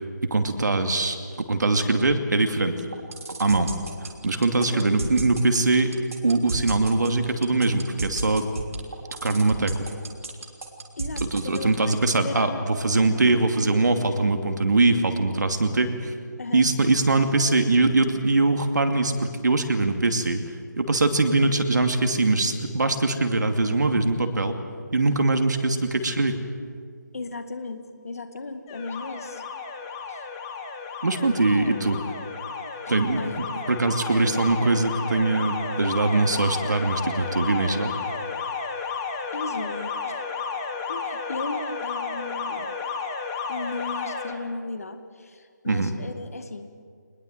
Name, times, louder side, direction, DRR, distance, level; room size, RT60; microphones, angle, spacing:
voice 1, 0.2-2.7 3.4-3.7 4.2-5.9 6.2-8.5 9.2-9.8 11.2-16.1 16.5-20.4 20.8-24.6 24.9-26.4 31.0-32.0 32.9-33.2 33.7-37.9 45.7-45.9, right 3 dB, 65° right, 6 dB, 2.5 m, -22 dB
sound 1, 2.8-11.9, right 3 dB, 45° right, 3.2 m, -32 dB
voice 2, 4.5-5.0 11.0-12.7 12.9-13.2 16.4-16.7 27.1-29.4 30.1-30.2 32.9-33.4 34.2-34.3 39.3-40.2 40.9-42.8 43.5-46.7, left 3 dB, 50° left, 8 dB, 2.1 m, -36 dB
Alarm, 28.7-44.3, left 5 dB, 10° left, 1.0 m, -32 dB
24.5 x 20.5 x 7.9 m, 2.1 s
figure-of-eight pair, 170°, 10 cm